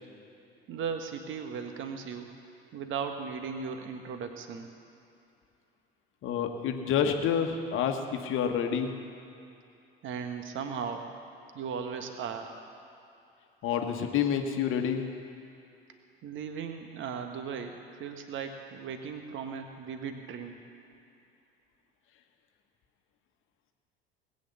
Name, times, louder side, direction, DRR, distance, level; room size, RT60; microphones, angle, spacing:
voice 1, 0.7-2.3 2.7-4.7 10.0-11.1 11.5-12.6 16.2-20.6, right 6 dB, 40° right, 6 dB, 1.5 m, -37 dB
voice 2, 6.2-8.9 13.6-15.1, left 8 dB, 40° left, 5 dB, 1.4 m, -28 dB
19.5 x 9.1 x 7.1 m, 2.6 s
figure-of-eight pair, 65°, 31 cm